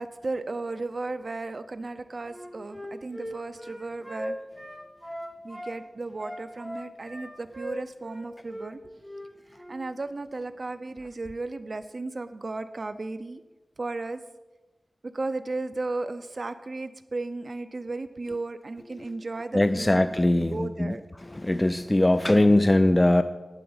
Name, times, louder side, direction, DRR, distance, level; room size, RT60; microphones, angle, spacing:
voice 1, 0.0-4.4 5.4-8.9 9.7-13.4 13.8-14.2 15.0-21.0, right 3 dB, 55° right, 9 dB, 0.6 m, -35 dB
Wind instrument woodwind instrument, 2.3-5.7 6.2-8.2 8.5-8.7 9.0-9.2 9.5-9.8, equal, ahead, 3.5 m, -39 dB
voice 2, 19.5-20.9 21.3-23.2, left 1 dB, 20° left, 10 dB, 0.5 m, -21 dB
9.0 x 8.6 x 8.0 m, 1.1 s
wide cardioid pair, 80°, 0 cm